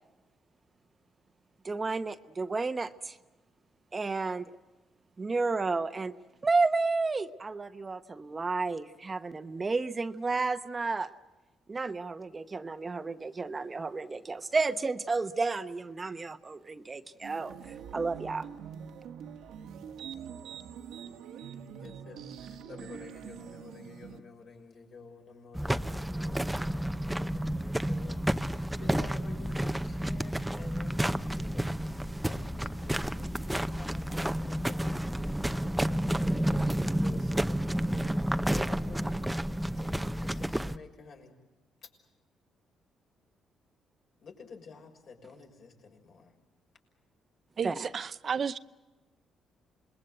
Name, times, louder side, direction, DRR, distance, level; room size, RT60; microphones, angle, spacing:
voice 1, 1.6-3.2 3.9-4.5 5.2-6.1 6.4-11.1 11.7-17.6 17.9-18.5 47.6-47.7, right 3 dB, 30° right, 1.0 m, -31 dB
sound 1, 17.2-24.2, right 8 dB, 80° right, 1.6 m, -44 dB
voice 2, 21.8-41.3 41.8-41.9 44.2-46.3, left 5 dB, 60° left, 6.2 m, -51 dB
sound 2, 25.6-40.8, right 1 dB, 5° right, 0.8 m, -30 dB
voice 3, 47.6-48.6, right 6 dB, 50° right, 0.7 m, -32 dB
27.5 x 21.0 x 7.9 m
cardioid pair, 90°, 0 cm